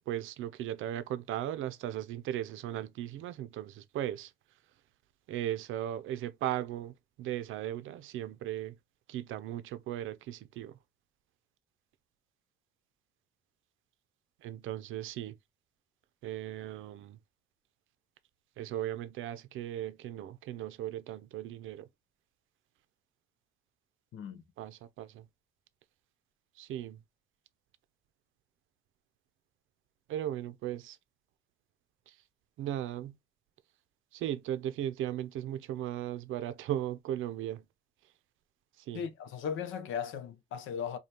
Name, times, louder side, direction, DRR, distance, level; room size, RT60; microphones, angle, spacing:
voice 1, 0.0-4.3 5.3-8.7 9.1-10.7 14.4-15.3 16.2-17.2 18.6-21.9 24.6-25.2 26.6-27.0 30.1-31.0 32.6-33.1 34.1-37.6 38.9-39.0, right 12 dB, 85° right, 0.6 m, -37 dB
voice 2, 24.1-24.4 38.9-41.0, left 7 dB, 80° left, 0.7 m, -37 dB
5.0 x 2.3 x 2.8 m
cardioid pair, 90°, 20 cm